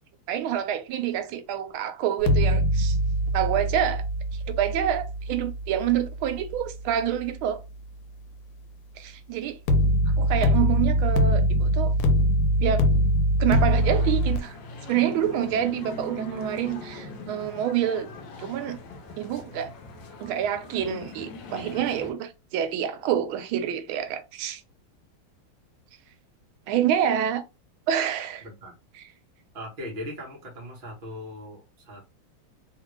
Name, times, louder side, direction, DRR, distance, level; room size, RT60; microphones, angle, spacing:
voice 1, 0.3-3.0 3.3-4.0 4.5-7.6 9.0-9.6 10.2-11.9 12.6-12.9 13.4-14.6 14.9-18.1 18.4-18.8 19.1-19.7 20.2-24.6 26.7-27.4 27.9-28.4, right 10 dB, 80° right, 1.3 m, -27 dB
sound 1, 2.2-7.3 9.7-14.4, equal, 85° left, 1.5 m, -23 dB
sound 2, 13.5-22.1, left 3 dB, 70° left, 1.3 m, -41 dB
voice 2, 28.4-28.7 29.5-32.0, left 1 dB, 40° right, 0.8 m, -39 dB
3.4 x 2.4 x 3.0 m
omnidirectional pair, 2.3 m